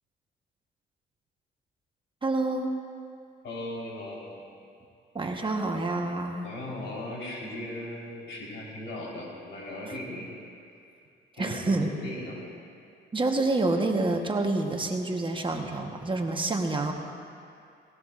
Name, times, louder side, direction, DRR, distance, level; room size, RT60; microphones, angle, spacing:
voice 1, 2.2-2.7 5.1-6.5 11.4-11.9 13.1-16.9, right 2 dB, 25° right, 2 dB, 1.1 m, -27 dB
voice 2, 3.4-4.4 6.4-10.3 11.4-12.4, left 1 dB, 70° left, -3 dB, 3.9 m, -38 dB
18.0 x 17.5 x 2.5 m, 2.5 s
cardioid pair, 90°, 20 cm